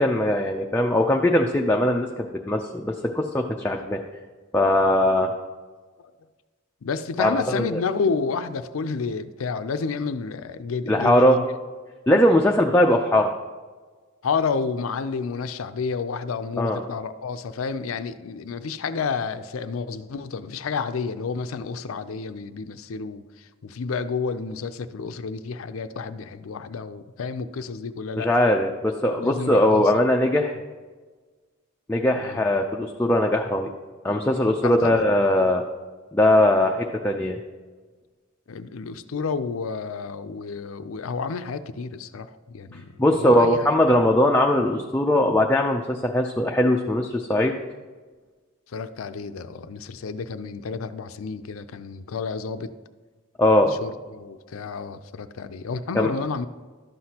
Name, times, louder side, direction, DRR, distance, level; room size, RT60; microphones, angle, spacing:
voice 1, 0.0-4.0 4.5-5.3 7.2-7.8 10.9-11.4 12.1-13.3 16.6-16.8 28.2-30.6 31.9-33.7 34.0-35.6 36.1-37.4 42.7-47.5 53.4-53.8 55.9-56.1, left 1 dB, 10° left, 1 dB, 0.4 m, -20 dB
voice 2, 6.8-11.5 14.2-28.3 29.2-30.1 32.1-32.4 34.6-35.0 38.5-43.8 48.7-52.7 53.7-56.5, left 5 dB, 80° left, 11 dB, 0.5 m, -30 dB
12.0 x 7.7 x 2.9 m, 1.4 s
head